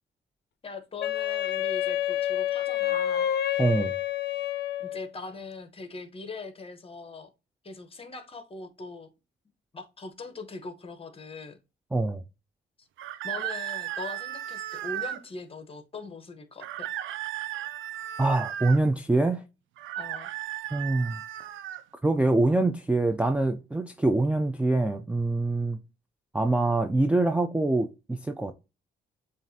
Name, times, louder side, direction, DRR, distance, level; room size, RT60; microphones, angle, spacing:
voice 1, 0.6-3.3 4.8-7.3 7.6-9.1 9.7-11.6 12.8-12.9 13.2-16.9 20.0-20.3, left 3 dB, 30° left, 0.9 m, -41 dB
Wind instrument woodwind instrument, 1.0-5.1, left 12 dB, 55° left, 0.5 m, -28 dB
voice 2, 3.6-3.9 11.9-12.2 18.2-19.4 20.7-21.2 22.0-25.8 26.3-28.5, right 2 dB, 5° right, 0.3 m, -24 dB
sound 1, 13.0-15.2 16.6-18.8 19.8-21.8, right 12 dB, 75° right, 0.4 m, -35 dB
7.3 x 2.5 x 2.7 m
cardioid pair, 90°, 20 cm